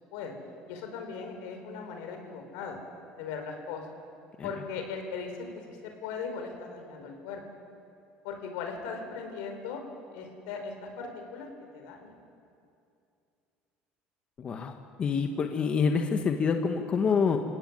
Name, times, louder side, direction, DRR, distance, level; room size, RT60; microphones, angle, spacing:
voice 1, 0.7-2.8 3.2-3.9 4.4-7.4 8.2-9.8 10.1-11.5 11.7-12.2, left 5 dB, 90° left, 4 dB, 4.8 m, -38 dB
voice 2, 14.4-17.4, left 5 dB, 30° left, 5 dB, 1.4 m, -27 dB
30.0 x 16.5 x 9.5 m, 2.5 s
cardioid pair, 150°, 4 cm